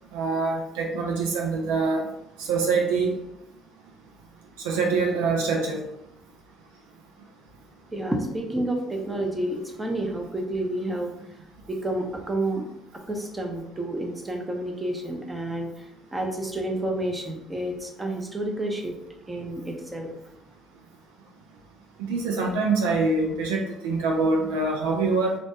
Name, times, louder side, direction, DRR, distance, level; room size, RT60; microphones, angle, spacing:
voice 1, 0.1-2.1 2.4-3.2 4.6-5.9 22.1-25.4, right 3 dB, 90° right, 0 dB, 0.3 m, -24 dB
voice 2, 7.9-11.1 11.7-12.7 13.1-15.8 16.1-18.9 19.3-20.1, right 1 dB, 20° right, 2 dB, 0.6 m, -29 dB
2.1 x 2.1 x 2.8 m, 0.83 s
hypercardioid pair, 60°, 0 cm